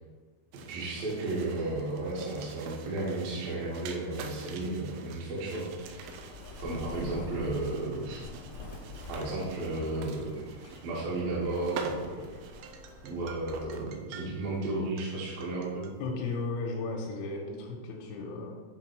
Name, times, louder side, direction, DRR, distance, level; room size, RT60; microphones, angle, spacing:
voice 1, 0.5-6.0 6.6-8.2 9.1-10.4 10.8-12.3 13.1-15.9, right 2 dB, 65° right, -7 dB, 2.5 m, -33 dB
sound 1, 0.5-14.6 14.8-16.0, right 6 dB, 85° right, 2.5 m, -47 dB
Bird, 5.6-13.9, left 3 dB, 60° left, 1.3 m, -47 dB
voice 2, 16.0-18.7, left 3 dB, 85° left, -1 dB, 3.3 m, -35 dB
9.4 x 3.8 x 4.6 m, 1.4 s
omnidirectional pair, 5.8 m